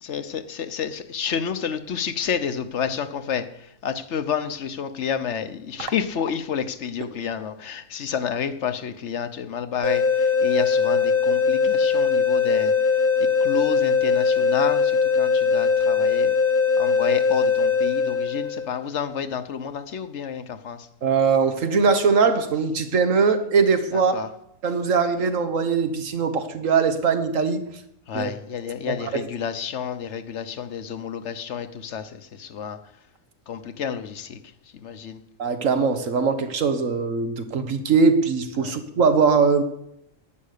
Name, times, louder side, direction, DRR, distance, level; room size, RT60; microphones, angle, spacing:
voice 1, 0.0-12.7 13.2-16.3 16.8-20.9 24.1-24.3 28.1-32.8 33.5-34.4 34.7-35.2 38.6-38.8, left 7 dB, 65° left, 1.1 m, -30 dB
sound 1, 9.8-18.8, left 5 dB, 15° left, 0.8 m, -21 dB
voice 2, 21.0-24.1 24.6-27.6 28.1-28.3 28.9-29.2 35.4-39.6, right 5 dB, 85° right, 1.7 m, -21 dB
11.0 x 9.5 x 6.6 m
omnidirectional pair, 1.3 m